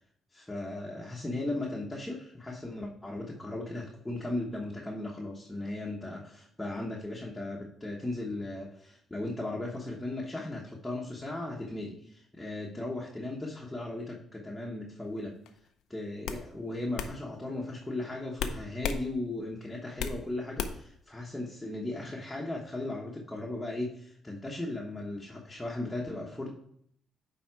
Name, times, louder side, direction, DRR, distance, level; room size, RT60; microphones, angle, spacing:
voice 1, 0.3-15.4 15.9-26.5, left 2 dB, 10° left, -3 dB, 1.2 m, -37 dB
sound 1, 15.5-15.7 16.2-16.4 17.0-17.1 18.4-19.0 19.4-20.2 20.6-20.9, left 7 dB, 85° left, 0.6 m, -33 dB
9.3 x 3.6 x 4.7 m, 0.69 s
cardioid pair, 90°, 0 cm